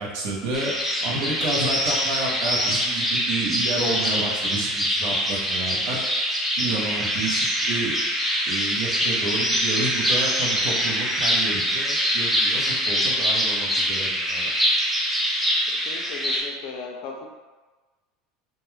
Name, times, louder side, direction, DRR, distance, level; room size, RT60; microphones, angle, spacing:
voice 1, 0.0-6.3 6.6-8.0 8.4-14.6, right 2 dB, 65° right, -3 dB, 0.7 m, -30 dB
sound 1, 0.5-16.4, equal, 5° right, 0.4 m, -24 dB
voice 2, 15.7-17.3, left 4 dB, 60° left, 1 dB, 0.4 m, -37 dB
2.2 x 2.2 x 3.0 m, 1.3 s
supercardioid pair, 145°, 0 cm